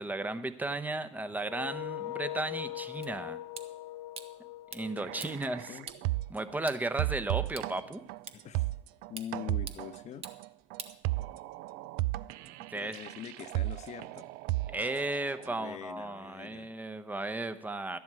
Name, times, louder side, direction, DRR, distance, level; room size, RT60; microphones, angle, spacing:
voice 1, 0.0-3.4 4.7-5.8 6.3-8.0 12.7-13.0 14.7-18.0, right 2 dB, 10° right, 10 dB, 0.9 m, -35 dB
sound 1, 1.4-6.2, left 15 dB, 85° left, 0.5 m, -41 dB
sound 2, 3.0-11.6, right 6 dB, 40° right, 1.1 m, -50 dB
sound 3, 5.0-6.6 7.0-15.5, right 18 dB, 65° right, 0.4 m, -35 dB
voice 2, 5.1-5.9 8.3-8.7 9.1-10.3 12.7-14.3 15.4-16.7, left 10 dB, 45° left, 11 dB, 0.9 m, -44 dB
12.0 x 10.5 x 4.8 m, 0.73 s
hypercardioid pair, 80°, 16 cm